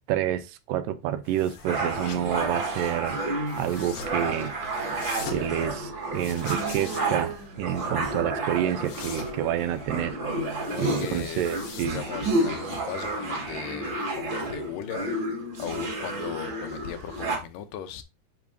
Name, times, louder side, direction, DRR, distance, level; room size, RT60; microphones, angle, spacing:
voice 1, 0.1-4.5 5.3-10.2 10.8-12.0, right 11 dB, 85° right, 2.3 m, -29 dB
sound 1, 1.2-12.3, left 5 dB, 60° left, 1.7 m, -44 dB
sound 2, 1.7-17.4, right 2 dB, 45° right, 1.7 m, -31 dB
voice 2, 10.7-11.4 11.9-15.1 15.6-18.0, left 9 dB, 80° left, 2.4 m, -37 dB
10.5 x 3.7 x 2.6 m
omnidirectional pair, 3.9 m